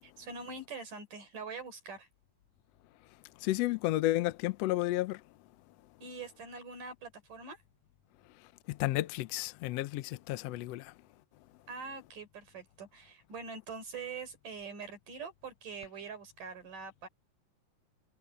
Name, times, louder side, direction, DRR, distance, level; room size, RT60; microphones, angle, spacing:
voice 1, 0.0-2.1 6.0-7.6 11.7-17.1, right 4 dB, 70° right, 6.4 m, -44 dB
voice 2, 3.4-5.2 8.7-10.9, left 16 dB, 80° left, 1.4 m, -32 dB
omnidirectional pair, 3.8 m